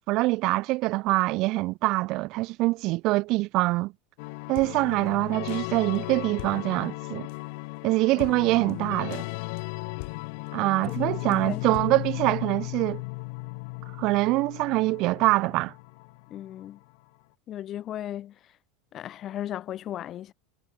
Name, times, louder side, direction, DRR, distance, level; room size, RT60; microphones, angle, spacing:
voice 1, 0.1-3.9 4.5-7.3 7.8-9.2 10.5-13.0 14.0-15.7, right 21 dB, 50° right, 0.5 m, -24 dB
sound 1, 4.2-16.8, left 30 dB, 60° left, 1.8 m, -36 dB
voice 2, 11.3-11.6 16.3-16.8 17.5-18.3 18.9-20.3, left 12 dB, 40° left, 1.6 m, -36 dB
hypercardioid pair, 80°, 0 cm